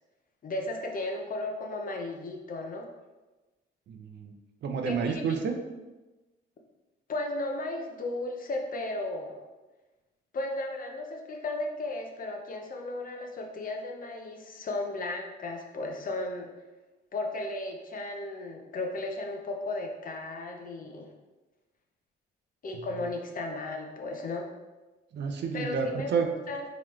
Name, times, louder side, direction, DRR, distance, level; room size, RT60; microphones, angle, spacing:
voice 1, 0.4-2.9 4.8-5.2 7.1-9.4 10.3-16.5 17.1-21.1 22.6-24.5 25.5-26.6, left 2 dB, 45° left, 2 dB, 0.7 m, -35 dB
voice 2, 3.9-4.3 4.6-5.6 25.1-26.3, right 5 dB, 60° right, 4 dB, 0.6 m, -30 dB
3.9 x 3.0 x 3.1 m, 1.1 s
cardioid pair, 90°, 20 cm